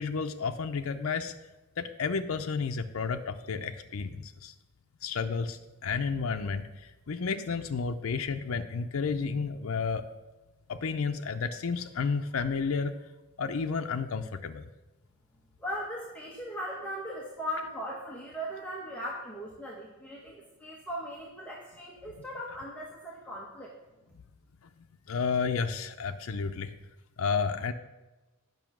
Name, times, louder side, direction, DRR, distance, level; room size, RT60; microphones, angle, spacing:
voice 1, 0.0-1.3 1.8-4.5 5.0-10.0 10.7-12.9 13.4-14.7 25.1-26.7 27.2-27.7, left 5 dB, 80° left, 7 dB, 0.5 m, -31 dB
voice 2, 15.6-23.7, equal, 5° left, -4 dB, 1.0 m, -38 dB
9.1 x 5.5 x 5.9 m, 1.1 s
head